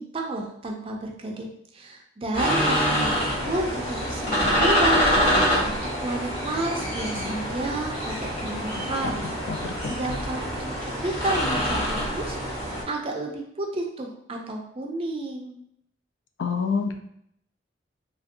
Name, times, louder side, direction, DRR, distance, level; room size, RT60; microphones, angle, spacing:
voice 1, 0.0-1.5 1.7-3.2 3.4-5.0 5.3-9.3 9.8-12.4 12.6-15.6, right 2 dB, 30° right, 1 dB, 0.4 m, -31 dB
sound 1, 2.3-12.8, equal, 30° left, 1.2 m, -25 dB
voice 2, 8.3-8.7 9.5-10.0 16.4-16.9, left 5 dB, 65° left, 6 dB, 0.3 m, -29 dB
3.1 x 2.5 x 2.7 m, 0.74 s
head